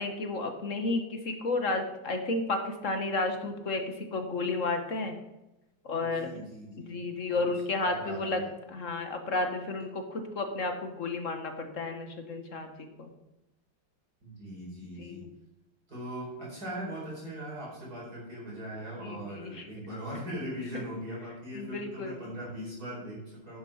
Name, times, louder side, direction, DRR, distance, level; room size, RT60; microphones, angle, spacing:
voice 1, 0.0-5.1 5.8-6.3 6.8-8.4 8.7-13.1 15.0-15.3 19.0-19.7 20.7-20.8 21.5-22.1, left 3 dB, 45° left, 5 dB, 1.4 m, -32 dB
voice 2, 6.0-7.0 7.3-8.5 14.2-15.3 15.9-23.6, equal, 45° right, -5 dB, 5.1 m, -40 dB
10.5 x 10.0 x 4.3 m, 0.95 s
omnidirectional pair, 2.2 m